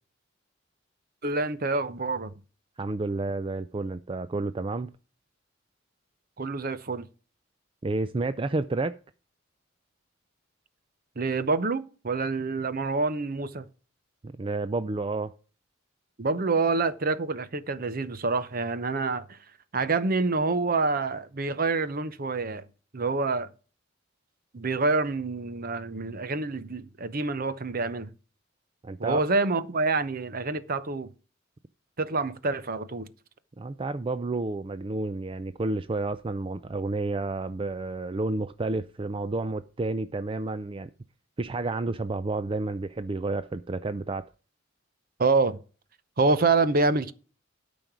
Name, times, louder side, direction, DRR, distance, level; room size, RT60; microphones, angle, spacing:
voice 1, 1.2-2.3 6.4-7.0 11.2-13.7 16.2-19.4 19.7-22.6 22.9-23.5 24.5-28.1 29.0-31.1 32.0-33.1 45.2-45.6 46.2-47.1, right 3 dB, 45° right, 0.8 m, -27 dB
voice 2, 2.8-4.9 7.8-8.9 14.2-15.3 28.8-29.2 33.6-40.9 41.4-44.3, right 2 dB, 25° right, 0.4 m, -30 dB
13.0 x 5.2 x 6.0 m
head